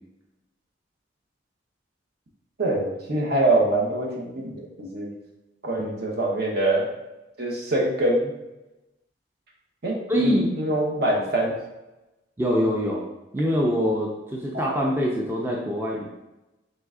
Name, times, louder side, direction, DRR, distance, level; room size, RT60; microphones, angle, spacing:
voice 1, 2.6-5.1 5.6-6.9 7.4-8.3 9.8-11.5 14.5-14.6, right 1 dB, 55° right, -1 dB, 0.9 m, -24 dB
voice 2, 10.1-10.5 12.4-13.0 13.3-16.0, equal, 10° right, -2 dB, 0.4 m, -24 dB
3.7 x 3.2 x 3.6 m, 0.98 s
head